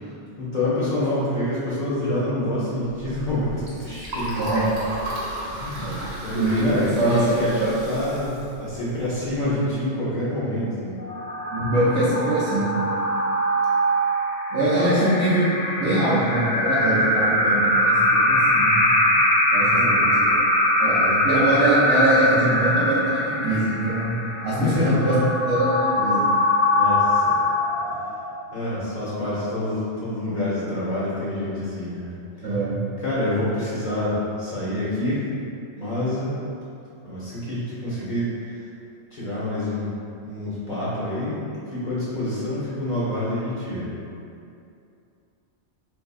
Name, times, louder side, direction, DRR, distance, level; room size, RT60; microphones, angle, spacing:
voice 1, 0.4-4.4 5.5-7.6 7.9-11.0 19.7-20.2 21.0-21.2 24.6-25.3 26.7-27.4 27.9-28.0 28.5-32.1 33.0-35.3 35.8-36.3 37.0-38.7 39.1-39.9 40.2-41.4 41.7-43.9, left 1 dB, 45° left, -10 dB, 0.7 m, -27 dB
Liquid, 2.8-9.5, right 1 dB, 45° right, 0.8 m, -34 dB
voice 2, 4.4-4.7 5.8-6.0 6.3-7.7 11.5-12.7 14.5-18.8 19.5-20.4 20.8-24.1 24.4-25.1 25.5-26.2 32.4-32.8, right 1 dB, 70° right, -10 dB, 1.0 m, -23 dB
sound 1, 11.0-28.4, left 1 dB, 85° left, 0.9 m, -22 dB
3.8 x 2.6 x 2.3 m, 2.6 s
omnidirectional pair, 1.2 m